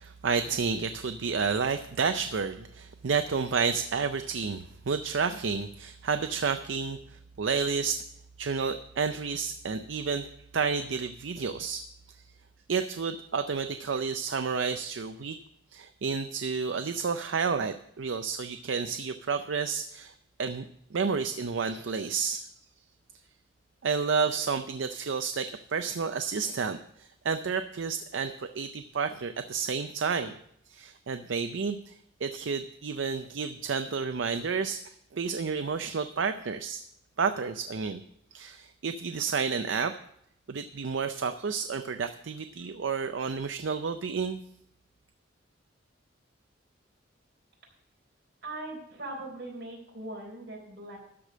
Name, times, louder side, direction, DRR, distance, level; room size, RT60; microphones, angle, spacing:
voice 1, 0.0-8.0 8.4-10.3 10.5-11.9 12.7-15.4 15.7-20.1 20.4-20.6 20.9-22.5 23.8-30.3 30.7-36.8 37.2-38.0 38.3-39.9 40.5-44.4, right 5 dB, 70° right, 9 dB, 0.5 m, -30 dB
voice 2, 48.4-51.0, right 1 dB, 55° right, -2 dB, 4.0 m, -40 dB
13.0 x 5.1 x 7.3 m, 0.72 s
head